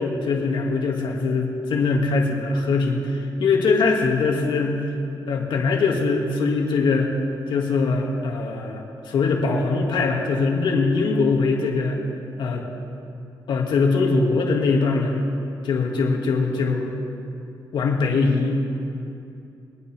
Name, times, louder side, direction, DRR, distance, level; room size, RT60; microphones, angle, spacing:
voice 1, 0.0-4.8 5.3-7.1 7.5-12.0 12.4-12.6 13.5-15.3 15.6-16.9 17.7-18.6, left 4 dB, 75° left, 0 dB, 2.1 m, -22 dB
24.0 x 9.3 x 3.5 m, 2.7 s
cardioid pair, 85°, 8 cm